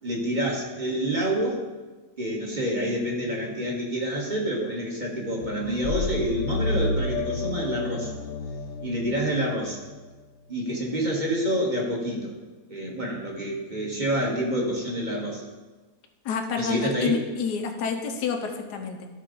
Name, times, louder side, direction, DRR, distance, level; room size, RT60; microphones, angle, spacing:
voice 1, 0.0-1.6 2.2-8.1 8.8-9.8 10.5-12.3 12.7-15.4 16.5-17.2, right 1 dB, 30° right, -2 dB, 1.4 m, -27 dB
sound 1, 5.4-10.1, left 3 dB, 70° left, 1.1 m, -31 dB
voice 2, 16.2-19.1, left 5 dB, 90° left, 4 dB, 1.4 m, -28 dB
13.0 x 4.6 x 3.8 m, 1.3 s
omnidirectional pair, 1.7 m